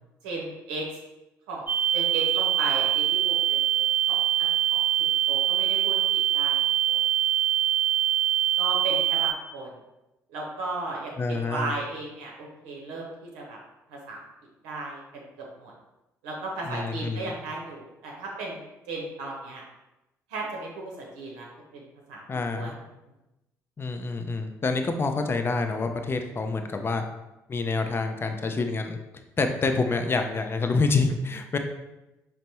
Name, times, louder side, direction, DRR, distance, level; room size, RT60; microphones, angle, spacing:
voice 1, 0.2-0.8 1.5-1.6 1.9-6.0 6.3-6.6 6.9-7.0 8.6-9.7 10.3-13.6 13.9-14.2 14.6-15.7 16.2-18.6 18.9-19.6 20.3-21.5 21.7-22.2 22.5-22.7, right 2 dB, 70° right, -2 dB, 0.7 m, -35 dB
sound 1, 1.7-9.3, right 12 dB, 25° right, 0.6 m, -24 dB
voice 2, 11.2-11.7 16.6-17.3 22.3-22.7 23.8-27.0 27.5-29.0 29.4-31.6, left 3 dB, 25° left, 6 dB, 0.4 m, -27 dB
5.2 x 2.0 x 2.8 m, 0.97 s
figure-of-eight pair, 45°, 8 cm